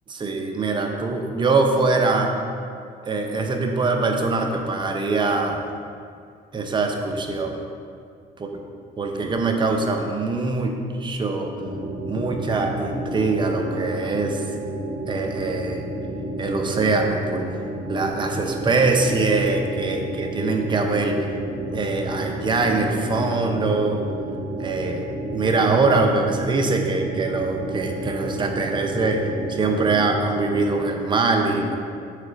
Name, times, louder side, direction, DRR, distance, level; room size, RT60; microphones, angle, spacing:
voice 1, 0.1-2.3 3.0-5.6 6.5-7.6 8.4-8.5 9.0-10.7 11.0-11.5 12.1-14.4 15.1-15.8 16.4-17.5 17.9-21.3 21.7-24.0 24.6-25.1 25.3-29.2 29.5-31.8, right 3 dB, 30° right, 3 dB, 0.7 m, -23 dB
sound 1, 11.6-30.7, right 1 dB, 60° right, 1.2 m, -31 dB
6.5 x 3.7 x 5.1 m, 2.3 s
cardioid pair, 110°, 17 cm